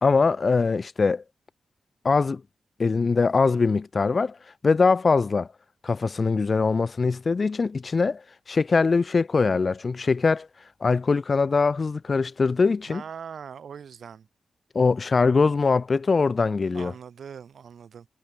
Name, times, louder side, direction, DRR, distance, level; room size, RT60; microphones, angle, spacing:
voice 1, 0.0-1.2 2.0-2.4 2.8-4.4 4.6-5.5 5.8-8.2 8.5-10.5 10.8-13.0 14.7-16.9, left 4 dB, 40° left, 0.7 m, -22 dB
voice 2, 12.9-14.3 16.7-18.1, right 7 dB, 70° right, 2.9 m, -41 dB
wide cardioid pair, 110°, 0 cm